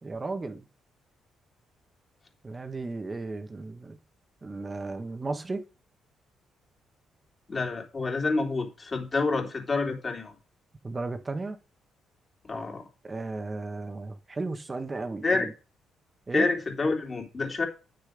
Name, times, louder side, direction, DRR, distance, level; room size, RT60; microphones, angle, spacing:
voice 1, 0.0-0.7 2.4-4.0 4.4-5.6 10.8-11.6 13.0-15.5 16.3-16.5, right 3 dB, 25° right, 1.5 m, -35 dB
voice 2, 7.5-10.4 12.4-12.9 15.2-15.5 16.3-17.7, left 3 dB, 30° left, 3.5 m, -28 dB
9.9 x 6.8 x 5.2 m
cardioid pair, 90°, 0 cm